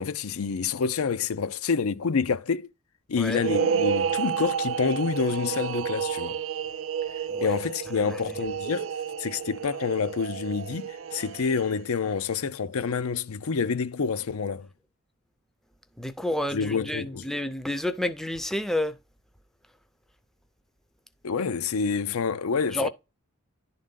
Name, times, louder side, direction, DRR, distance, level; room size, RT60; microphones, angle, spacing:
voice 1, 0.0-2.7 3.1-6.4 7.4-8.9 9.2-14.7 16.5-17.3 21.2-22.9, left 5 dB, 85° left, 0.6 m, -28 dB
sound 1, 3.3-11.9, right 7 dB, 65° right, 0.4 m, -30 dB
voice 2, 16.0-19.0 22.7-22.9, left 1 dB, ahead, 0.5 m, -30 dB
11.0 x 3.9 x 3.7 m
head